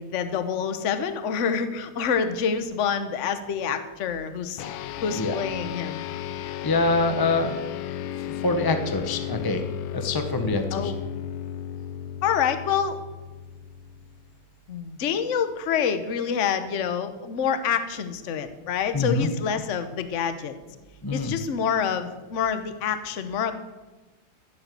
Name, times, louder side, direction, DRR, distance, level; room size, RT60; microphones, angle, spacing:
voice 1, 0.0-4.6 5.0-6.1 10.7-11.0 12.2-13.0 14.7-20.5 21.1-23.5, left 7 dB, 45° left, 10 dB, 1.0 m, -27 dB
sound 1, 4.6-14.3, left 10 dB, 75° left, 1.4 m, -34 dB
voice 2, 6.6-7.5 8.4-9.6 9.9-10.9 18.9-19.3 21.0-21.3, left 3 dB, 25° left, 7 dB, 0.5 m, -25 dB
15.0 x 7.8 x 7.7 m, 1.1 s
omnidirectional pair, 2.3 m